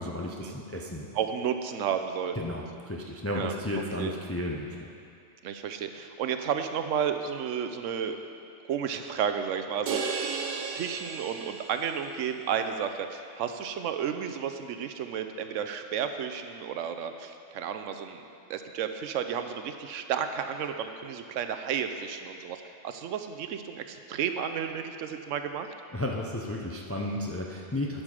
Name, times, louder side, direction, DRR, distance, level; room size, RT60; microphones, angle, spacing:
voice 1, 0.0-1.1 2.4-4.9 25.9-28.0, left 1 dB, 20° left, 0 dB, 0.3 m, -33 dB
voice 2, 1.1-2.4 3.3-4.1 5.4-8.2 8.7-18.2 18.5-22.6 22.8-25.7, right 8 dB, 80° right, 7 dB, 1.0 m, -32 dB
sound 1, 9.9-12.2, right 5 dB, 55° right, 0.7 m, -34 dB
11.0 x 6.6 x 4.9 m, 2.4 s
omnidirectional pair, 1.3 m